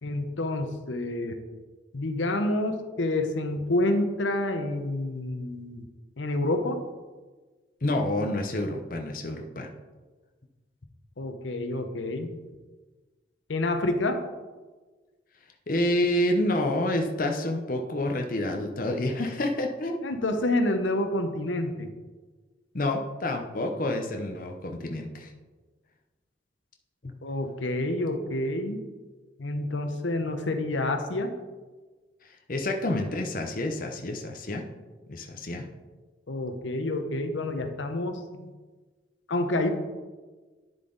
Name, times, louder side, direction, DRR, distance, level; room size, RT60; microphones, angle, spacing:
voice 1, 0.0-1.4 1.9-5.8 6.2-6.8 11.2-12.4 13.5-14.2 20.0-21.9 27.2-28.8 29.4-31.3 36.3-38.4 39.3-39.7, left 1 dB, 80° left, 7 dB, 0.8 m, -28 dB
voice 2, 7.8-9.7 15.7-20.1 22.7-25.3 27.0-27.1 32.5-34.6 35.1-35.6, left 1 dB, 45° left, 3 dB, 0.7 m, -28 dB
9.6 x 7.4 x 3.9 m, 1.3 s
head